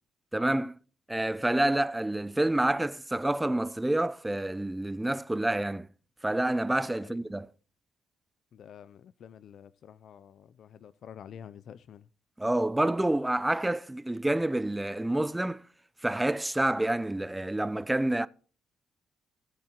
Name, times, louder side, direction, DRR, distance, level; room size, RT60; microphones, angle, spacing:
voice 1, 0.3-0.7 1.1-5.9 6.2-7.5 12.4-15.6 16.0-18.3, right 1 dB, 10° right, 0.5 m, -28 dB
voice 2, 8.5-12.1, left 8 dB, 65° left, 0.4 m, -49 dB
18.0 x 7.5 x 2.9 m
cardioid pair, 90°, 0 cm